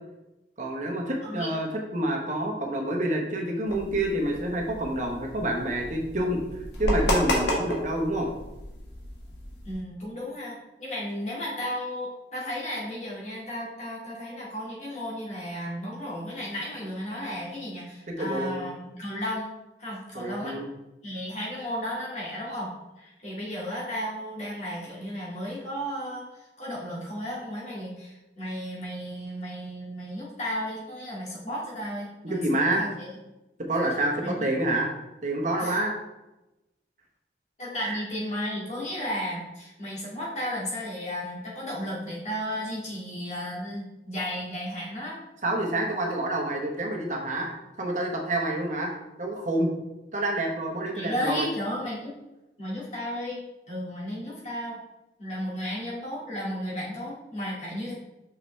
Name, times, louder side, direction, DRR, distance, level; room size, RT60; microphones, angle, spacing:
voice 1, 0.6-6.4 6.8-8.3 18.2-18.6 20.1-20.6 32.2-32.9 33.7-34.9 35.2-35.9 37.8-38.0 45.4-49.7 50.1-51.5, right 1 dB, 45° right, 1 dB, 1.2 m, -28 dB
sound 1, 3.7-9.7, left 1 dB, 75° left, 1.5 m, -31 dB
voice 2, 9.6-19.5 19.8-20.6 21.0-33.1 34.2-34.5 35.6-35.8 37.6-45.2 50.9-52.1 52.6-54.8 55.2-57.9, equal, 40° left, -5 dB, 2.2 m, -34 dB
6.0 x 5.7 x 3.3 m, 0.99 s
head